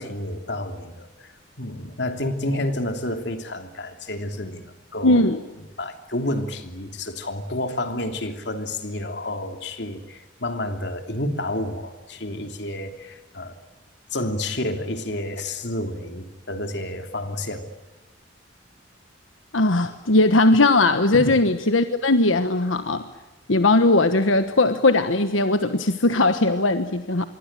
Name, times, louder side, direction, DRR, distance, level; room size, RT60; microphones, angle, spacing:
voice 1, 0.0-1.3 1.6-5.3 5.8-13.5 14.1-17.7 21.1-21.3, left 1 dB, 60° left, 6 dB, 3.1 m, -30 dB
voice 2, 5.0-5.4 19.5-23.1 23.5-27.3, left 2 dB, 90° left, 9 dB, 1.3 m, -19 dB
26.5 x 22.5 x 9.0 m, 1.1 s
head